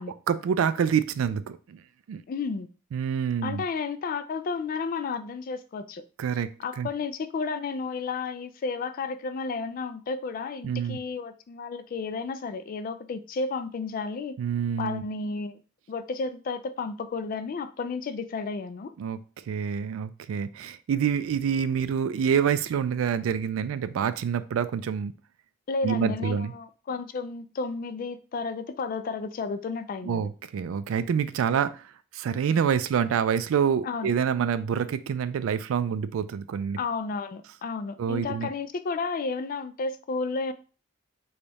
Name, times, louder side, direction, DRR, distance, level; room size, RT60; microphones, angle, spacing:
voice 1, 0.3-1.8 2.1-2.2 2.9-3.6 6.2-6.9 10.6-11.0 14.4-15.0 19.0-19.2 19.5-25.1 25.8-26.5 30.0-31.9 32.1-36.8 38.0-38.5, right 7 dB, 85° right, 0.3 m, -27 dB
voice 2, 2.3-2.7 3.4-6.0 6.6-14.4 14.8-15.6 15.9-18.9 25.7-30.3 33.8-34.1 36.8-40.5, left 4 dB, 45° left, 0.3 m, -32 dB
3.4 x 2.3 x 3.9 m
head